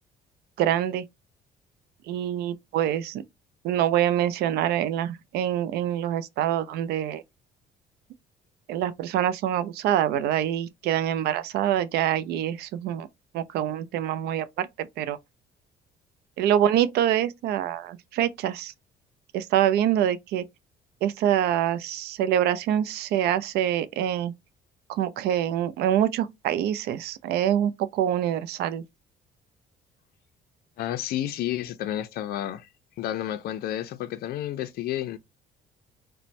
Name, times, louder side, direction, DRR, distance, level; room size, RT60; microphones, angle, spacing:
voice 1, 0.6-1.0 2.1-3.2 3.6-7.2 8.7-13.1 13.3-15.2 16.4-18.7 19.3-20.4 21.0-24.3 24.9-28.8, right 11 dB, 70° right, 0.4 m, -25 dB
voice 2, 30.8-32.7 33.0-35.2, left 12 dB, 65° left, 0.4 m, -31 dB
2.5 x 2.1 x 3.0 m
cardioid pair, 110°, 17 cm